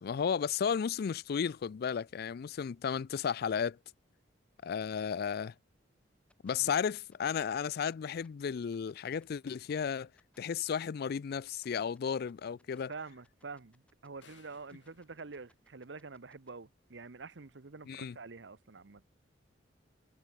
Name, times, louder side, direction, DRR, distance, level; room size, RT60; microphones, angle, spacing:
voice 1, 0.0-3.8 4.6-5.5 6.4-10.1 10.4-12.9 17.9-18.2, left 7 dB, 55° left, 0.4 m, -34 dB
sound 1, 6.3-16.5, left 1 dB, 5° left, 2.4 m, -68 dB
voice 2, 12.9-19.0, right 4 dB, 70° right, 1.0 m, -47 dB
sound 2, 14.2-16.4, left 5 dB, 75° left, 7.1 m, -64 dB
head